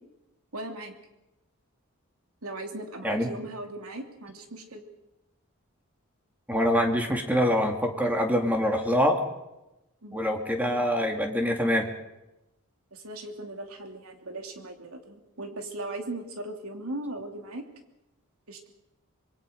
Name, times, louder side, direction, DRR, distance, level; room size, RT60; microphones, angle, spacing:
voice 1, 0.5-0.9 2.4-4.8 10.0-10.2 12.9-17.6 18.5-18.6, right 2 dB, 85° right, 4 dB, 3.0 m, -38 dB
voice 2, 6.5-9.2 10.1-11.9, equal, 10° right, 3 dB, 2.4 m, -25 dB
25.5 x 22.0 x 5.3 m, 0.96 s
head